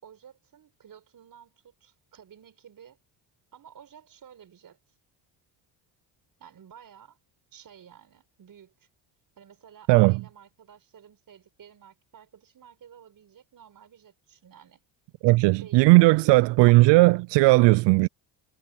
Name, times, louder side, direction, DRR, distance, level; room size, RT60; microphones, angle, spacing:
voice 1, 0.0-3.0 3.5-4.8 6.4-7.2 7.5-8.9 9.4-14.8 15.3-16.5, right 8 dB, 50° right, 5.9 m, -52 dB
voice 2, 9.9-10.2 15.2-18.1, right 22 dB, 75° right, 0.5 m, -17 dB
cardioid pair, 95°, 43 cm